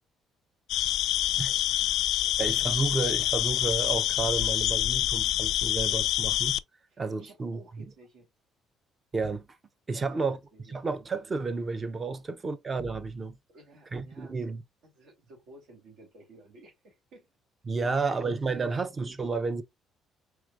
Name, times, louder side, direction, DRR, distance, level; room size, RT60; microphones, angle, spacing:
sound 1, 0.7-6.6, left 14 dB, 75° left, 0.3 m, -26 dB
voice 1, 0.9-1.4 2.2-2.3 6.9-8.3 9.9-10.8 12.1-12.2 13.5-14.4 14.8-17.3 17.8-18.8, right 2 dB, 70° right, 2.7 m, -54 dB
voice 2, 2.4-6.6 7.0-7.6 9.1-9.5 9.9-10.4 10.7-13.4 13.9-14.6 17.7-19.6, right 4 dB, 20° right, 0.6 m, -31 dB
4.8 x 3.5 x 2.4 m
cardioid pair, 150°, 0 cm